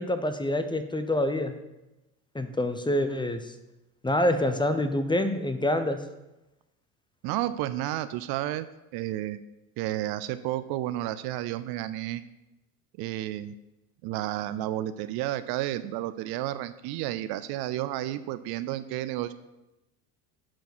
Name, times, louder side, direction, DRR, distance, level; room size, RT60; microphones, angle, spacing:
voice 1, 0.0-1.5 2.3-3.4 4.0-6.0, left 1 dB, 10° left, 9 dB, 0.9 m, -26 dB
voice 2, 7.2-8.7 8.9-9.4 9.8-12.2 13.0-13.5 14.0-19.3, right 14 dB, 55° right, 13 dB, 0.6 m, -31 dB
10.5 x 4.7 x 6.1 m, 0.98 s
hypercardioid pair, 80°, 45 cm